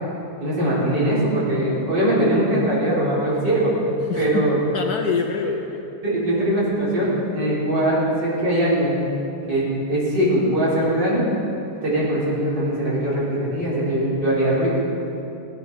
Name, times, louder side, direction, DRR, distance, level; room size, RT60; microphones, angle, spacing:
voice 1, 0.4-3.7 4.1-4.6 5.5-5.6 6.0-9.0 9.5-11.2 11.8-14.7, right 1 dB, 60° right, -7 dB, 4.4 m, -21 dB
voice 2, 4.1-4.5 4.7-5.8, left 5 dB, 60° left, 4 dB, 1.1 m, -26 dB
17.0 x 9.3 x 5.7 m, 2.9 s
omnidirectional pair, 2.1 m